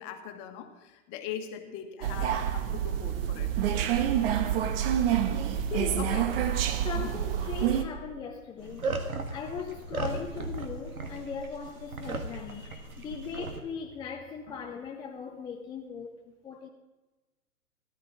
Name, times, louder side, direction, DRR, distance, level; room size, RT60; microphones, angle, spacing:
voice 1, 0.0-3.5 6.0-6.3 6.8-7.1 14.5-14.6, left 9 dB, 35° left, 1.6 m, -41 dB
sound 1, 2.0-7.8, right 10 dB, 45° right, 1.2 m, -27 dB
voice 2, 5.7-6.3 6.7-8.9 9.3-16.1 16.4-16.7, left 6 dB, 10° left, 0.5 m, -39 dB
sound 2, 8.6-13.6, right 3 dB, 80° right, 1.6 m, -36 dB
13.0 x 12.5 x 4.9 m
figure-of-eight pair, 110°, 42 cm